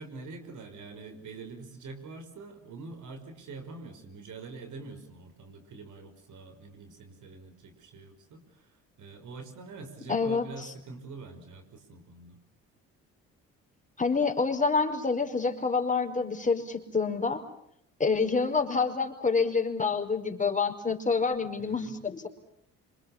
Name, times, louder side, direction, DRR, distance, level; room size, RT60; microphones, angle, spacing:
voice 1, 0.0-12.4 21.6-22.0, right 3 dB, 65° right, 7 dB, 5.9 m, -45 dB
voice 2, 10.1-10.4 14.0-17.4 18.0-22.3, left 4 dB, 25° left, 5 dB, 5.0 m, -27 dB
27.0 x 26.0 x 7.4 m, 0.72 s
supercardioid pair, 65°, 32 cm